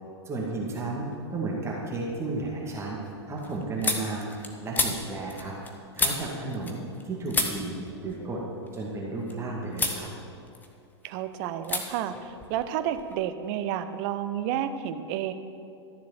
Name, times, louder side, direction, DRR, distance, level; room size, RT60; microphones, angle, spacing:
voice 1, 0.2-3.0 3.3-4.3 4.6-5.5 5.9-7.7 8.0-8.4 8.7-10.1, right 2 dB, 20° right, -3 dB, 2.2 m, -33 dB
sound 1, 1.1-1.6 2.0-7.0 7.3-9.3 9.7-10.0 10.4-11.1 11.6-11.8 12.1-13.2, left 3 dB, 10° left, 1.4 m, -32 dB
voice 2, 11.0-15.3, right 10 dB, 40° right, 10 dB, 0.8 m, -31 dB
13.5 x 7.3 x 7.3 m, 2.6 s
figure-of-eight pair, 100°, 15 cm